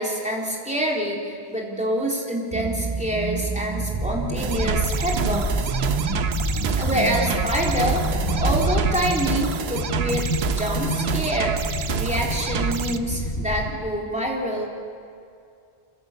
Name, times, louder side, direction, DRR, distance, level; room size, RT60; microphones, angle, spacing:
voice 1, 0.0-5.7 6.8-8.0 8.4-14.7, equal, 5° right, -2 dB, 3.8 m, -26 dB
sound 1, 2.5-9.6, right 4 dB, 30° right, 0.4 m, -29 dB
sound 2, 3.9-13.7, left 1 dB, 70° left, 5.5 m, -28 dB
sound 3, 4.4-13.0, right 7 dB, 85° right, 1.1 m, -28 dB
26.5 x 15.5 x 8.0 m, 2.5 s
omnidirectional pair, 1.0 m